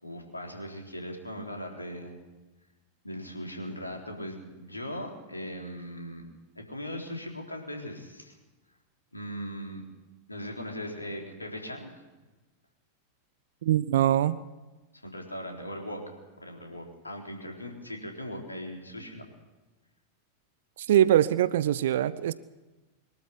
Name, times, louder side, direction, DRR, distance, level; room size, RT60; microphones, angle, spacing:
voice 1, 0.0-2.2 3.0-6.2 6.6-8.4 9.1-9.8 10.3-11.9 14.9-16.0 16.4-19.2, equal, 85° left, 1 dB, 3.8 m, -39 dB
voice 2, 13.6-14.4 20.9-22.3, right 11 dB, 60° right, 18 dB, 0.7 m, -22 dB
24.0 x 12.5 x 9.9 m, 1.1 s
figure-of-eight pair, 90°, 0 cm